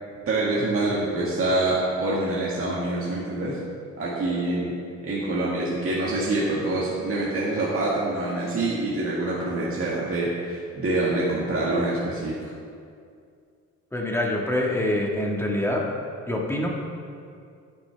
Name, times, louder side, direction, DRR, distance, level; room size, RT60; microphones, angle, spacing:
voice 1, 0.3-3.6 4.0-12.4, right 2 dB, 45° right, -6 dB, 1.8 m, -26 dB
voice 2, 13.9-15.9 16.3-16.7, left 1 dB, 10° left, -2 dB, 1.6 m, -25 dB
10.0 x 9.7 x 3.4 m, 2.3 s
cardioid pair, 90°, 30 cm